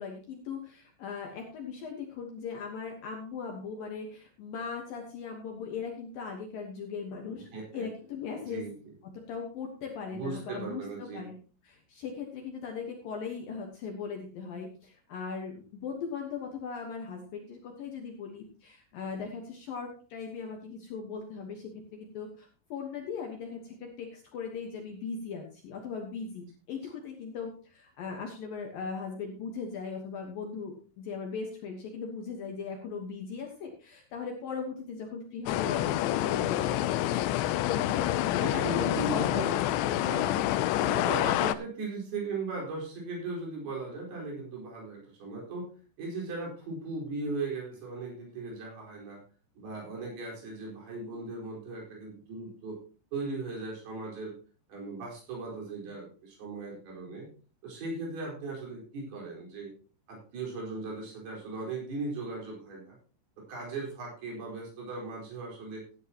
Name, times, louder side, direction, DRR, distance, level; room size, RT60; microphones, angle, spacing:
voice 1, 0.0-8.7 9.0-11.4 11.6-39.5 40.7-41.1, left 5 dB, 70° left, 1 dB, 2.2 m, -39 dB
voice 2, 7.5-7.9 8.5-8.9 10.1-11.3 37.8-45.7 46.0-49.2 49.6-52.8 53.1-54.3 54.7-57.3 57.6-59.7 60.1-63.0 63.5-65.8, right 3 dB, 50° right, -2 dB, 6.3 m, -38 dB
sound 1, 35.5-41.5, left 14 dB, 85° left, 2.6 m, -28 dB
15.0 x 10.5 x 2.9 m, 0.37 s
omnidirectional pair, 5.9 m